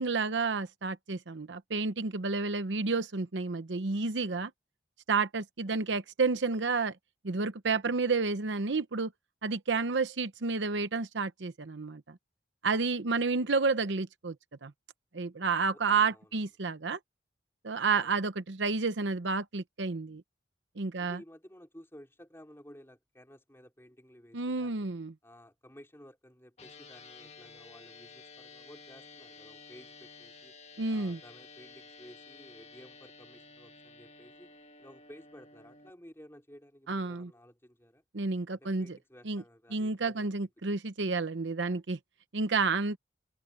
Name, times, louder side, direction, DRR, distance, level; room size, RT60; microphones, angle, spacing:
voice 1, 0.0-4.5 5.1-6.9 7.2-9.1 9.4-12.2 12.6-14.3 14.6-14.7 15.1-17.0 17.6-20.2 20.8-21.2 24.3-25.1 30.8-31.2 36.9-37.3 38.1-39.0 39.3-39.4 39.7-42.0 42.3-43.0, right 4 dB, 80° right, 0.9 m, -30 dB
voice 2, 5.7-6.1 13.1-13.5 15.7-16.4 17.9-18.2 21.0-24.9 25.2-30.5 30.9-34.5 34.8-38.0 38.5-40.4, equal, 15° left, 4.0 m, -54 dB
sound 1, 26.6-35.9, left 4 dB, 35° left, 1.8 m, -52 dB
head